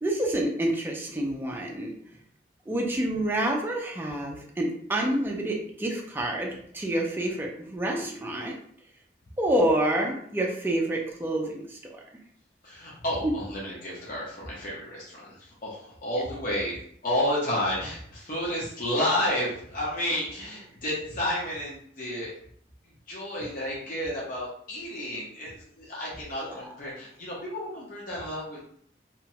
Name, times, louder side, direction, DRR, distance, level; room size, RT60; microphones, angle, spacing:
voice 1, 0.0-1.9 2.7-8.5 9.4-11.8 26.4-26.6, right 1 dB, 10° right, -1 dB, 0.4 m, -28 dB
voice 2, 12.6-22.3 23.1-28.6, left 1 dB, 50° left, -5 dB, 0.8 m, -31 dB
2.9 x 2.2 x 2.7 m, 0.64 s
head